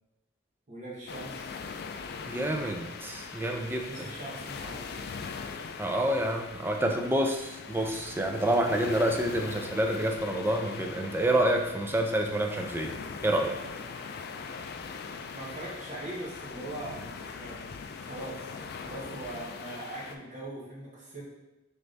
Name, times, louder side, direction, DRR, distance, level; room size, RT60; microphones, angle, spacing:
voice 1, 0.7-1.5 3.7-4.8 15.3-17.6 18.0-21.3, right 1 dB, 40° right, -5 dB, 1.2 m, -41 dB
sound 1, 1.1-20.2, left 5 dB, 55° left, 0.3 m, -41 dB
voice 2, 2.3-3.9 5.8-13.0 13.2-13.6, right 1 dB, 10° right, 2 dB, 0.4 m, -28 dB
4.0 x 3.4 x 3.3 m, 0.99 s
head